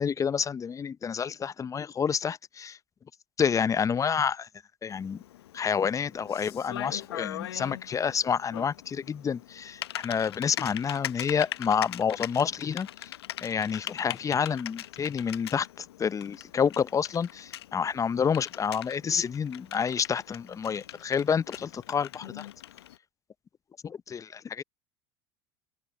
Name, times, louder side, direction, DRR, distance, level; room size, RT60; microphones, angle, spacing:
voice 1, 0.0-2.8 3.4-4.5 4.8-5.2 5.5-13.1 13.4-22.5 23.8-24.6, left 7 dB, 25° left, 0.7 m, -29 dB
Typing, 4.9-23.0, left 13 dB, 80° left, 0.7 m, -41 dB
open air
hypercardioid pair, 80°, 13 cm